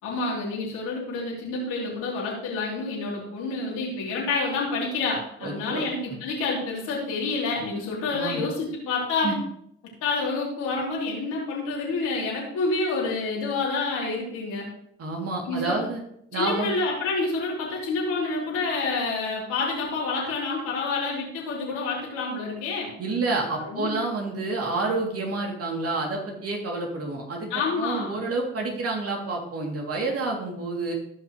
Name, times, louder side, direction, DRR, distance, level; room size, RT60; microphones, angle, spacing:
voice 1, 0.0-9.3 10.0-14.7 15.5-15.8 16.3-22.9 23.6-23.9 27.5-28.2, left 3 dB, 80° left, -4 dB, 3.5 m, -28 dB
voice 2, 5.4-5.8 8.1-8.4 9.2-9.3 15.0-16.0 16.3-16.7 23.0-27.5 27.8-30.9, right 3 dB, 55° right, 0 dB, 2.9 m, -29 dB
15.5 x 5.8 x 3.2 m, 0.72 s
hypercardioid pair, 55°, 29 cm